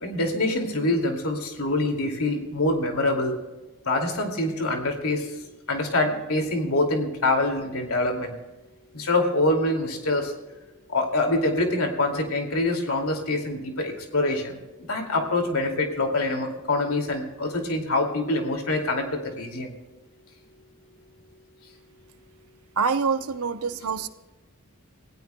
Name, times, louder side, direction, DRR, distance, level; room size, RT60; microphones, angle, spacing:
voice 1, 0.0-3.3 3.8-5.3 5.7-8.3 8.9-10.3 10.9-14.6 14.9-19.7, left 2 dB, 85° left, 3 dB, 2.5 m, -25 dB
voice 2, 22.8-24.1, right 5 dB, 85° right, 10 dB, 0.8 m, -25 dB
28.5 x 16.0 x 2.3 m, 1.1 s
head